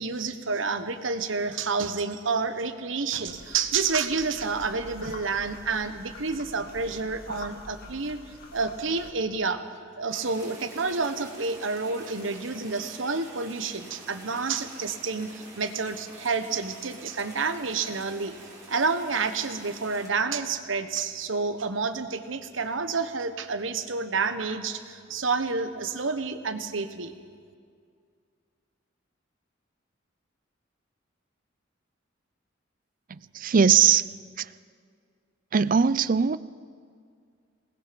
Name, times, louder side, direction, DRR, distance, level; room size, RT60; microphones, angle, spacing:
voice 1, 0.0-8.2 8.5-9.6 10.0-18.3 18.7-27.1, right 4 dB, 80° right, 9 dB, 1.3 m, -29 dB
sound 1, 3.3-9.1, left 2 dB, 50° left, 2.1 m, -46 dB
sound 2, 10.1-20.1, right 2 dB, 20° right, 3.3 m, -47 dB
voice 2, 33.1-34.0 34.4-34.5 35.5-36.4, right 7 dB, 45° right, 17 dB, 0.5 m, -21 dB
27.0 x 20.0 x 5.3 m, 2.2 s
head